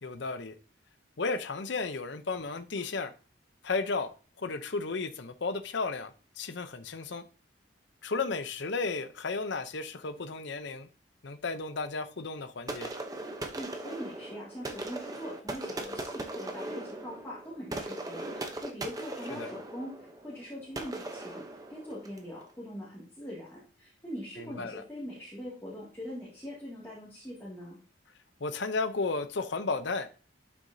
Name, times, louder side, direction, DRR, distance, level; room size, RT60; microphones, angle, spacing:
voice 1, 0.0-0.5 1.2-3.1 3.6-4.1 4.4-7.2 8.0-10.9 11.2-12.9 19.3-19.5 24.4-24.8 28.4-30.1, left 3 dB, 65° left, 0.7 m, -33 dB
sound 1, 12.7-22.3, right 2 dB, 20° right, 0.8 m, -39 dB
voice 2, 13.5-27.8, equal, 15° left, 2.2 m, -42 dB
11.5 x 6.1 x 2.7 m
head